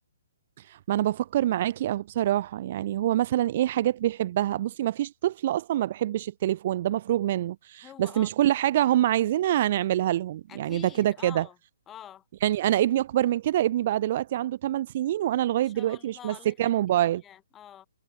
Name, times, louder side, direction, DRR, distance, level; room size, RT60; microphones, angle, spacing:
voice 1, 0.6-11.5 12.4-17.2, right 13 dB, 40° right, 0.5 m, -26 dB
voice 2, 7.8-8.3 10.5-11.6 11.9-12.2 15.6-17.9, left 10 dB, 15° left, 3.1 m, -47 dB
figure-of-eight pair, 130°, 0 cm